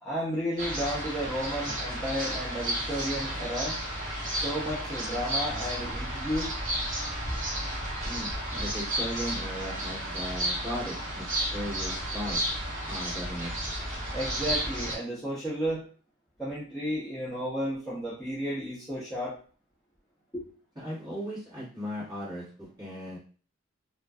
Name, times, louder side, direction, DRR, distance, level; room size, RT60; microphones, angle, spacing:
voice 1, 0.0-3.8 4.3-6.5 14.1-15.9 16.4-19.4 20.3-20.5, equal, 5° left, -10 dB, 0.5 m, -33 dB
sound 1, 0.6-15.0, right 1 dB, 40° right, 0.9 m, -32 dB
voice 2, 8.0-12.4 12.9-13.5 20.7-23.2, equal, 20° right, -9 dB, 1.3 m, -37 dB
2.4 x 2.4 x 2.2 m, 0.39 s
head